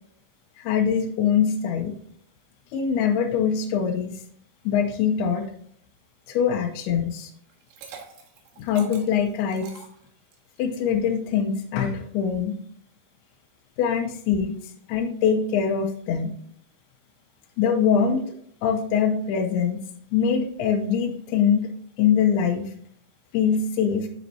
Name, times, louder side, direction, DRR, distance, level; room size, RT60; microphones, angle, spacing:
voice 1, 0.6-2.0 2.7-4.2 4.7-5.5 6.3-7.3 8.6-9.7 10.6-12.6 13.8-14.6 14.9-16.3 17.6-18.3 18.6-19.8 20.1-21.7 22.0-22.7 23.3-24.1, left 7 dB, 85° left, 2 dB, 2.7 m, -23 dB
Liquid, 7.5-10.6, right 6 dB, 75° right, 3.2 m, -45 dB
12.0 x 4.4 x 2.7 m, 0.64 s
omnidirectional pair, 4.6 m